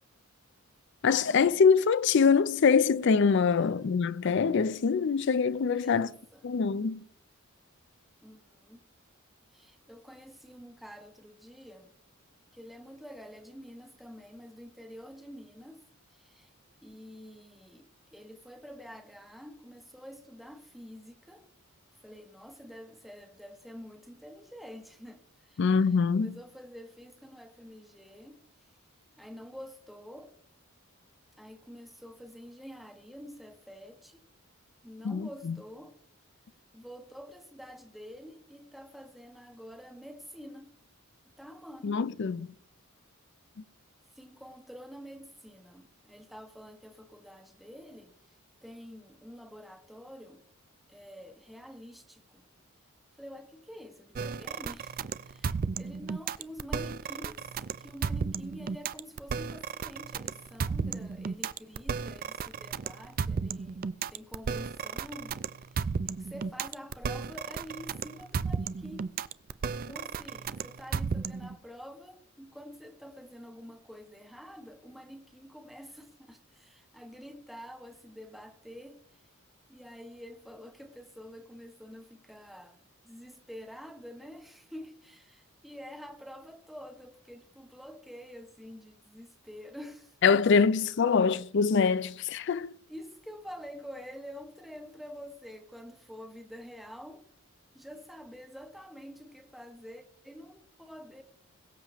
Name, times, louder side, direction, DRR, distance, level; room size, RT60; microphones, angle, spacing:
voice 1, 1.0-6.1 6.4-7.0 25.6-26.3 35.0-35.6 41.8-42.5 90.2-92.7, left 5 dB, 55° left, 0.4 m, -24 dB
voice 2, 5.7-6.5 8.2-8.8 9.5-11.9 12.5-15.8 16.1-16.5 16.8-21.5 22.0-28.7 29.2-30.4 31.4-34.2 34.8-36.0 36.7-40.8 41.4-42.0 44.1-50.4 50.9-52.4 53.2-69.1 69.9-79.3 79.7-90.4 92.9-97.3 97.7-101.2, equal, ahead, 1.1 m, -48 dB
sound 1, 54.1-71.6, right 5 dB, 40° right, 0.3 m, -34 dB
22.0 x 7.5 x 3.0 m
head